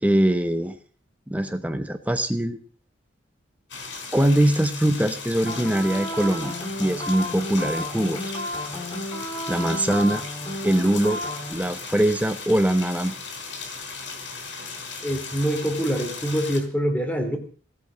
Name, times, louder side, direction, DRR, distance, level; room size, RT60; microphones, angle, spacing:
voice 1, 0.0-0.8 1.3-2.6 4.1-8.3 9.5-10.3 10.6-11.2 11.5-13.2, right 1 dB, 10° right, 8 dB, 0.9 m, -22 dB
sound 1, 3.7-16.6, left 4 dB, 70° left, 4.5 m, -37 dB
sound 2, 5.5-11.5, equal, 25° left, 2.9 m, -32 dB
voice 2, 15.0-17.4, equal, 10° left, 4 dB, 2.8 m, -25 dB
18.5 x 8.5 x 6.2 m, 0.42 s
head